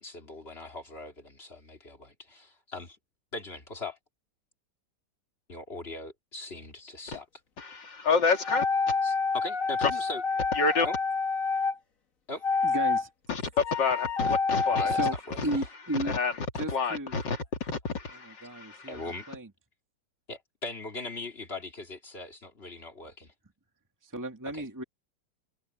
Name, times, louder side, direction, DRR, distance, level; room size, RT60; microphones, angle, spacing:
voice 1, 0.0-3.0 3.3-4.0 5.5-7.3 9.0-10.2 10.8-11.0 12.3-12.4 14.7-15.0 15.3-15.6 18.9-19.3 20.3-23.3 24.5-24.6, left 2 dB, 35° left, 3.2 m, -40 dB
voice 2, 7.6-8.6 9.8-9.9 10.6-10.9 13.3-14.9 16.1-18.9, left 4 dB, 90° left, 3.1 m, -28 dB
sound 1, 8.4-11.7 12.4-13.0 13.6-15.1, left 4 dB, 50° left, 2.2 m, -28 dB
voice 3, 12.6-13.1 14.8-16.2 16.5-17.1 18.1-19.5 24.0-24.8, right 1 dB, 10° right, 2.0 m, -35 dB
omnidirectional pair, 1.9 m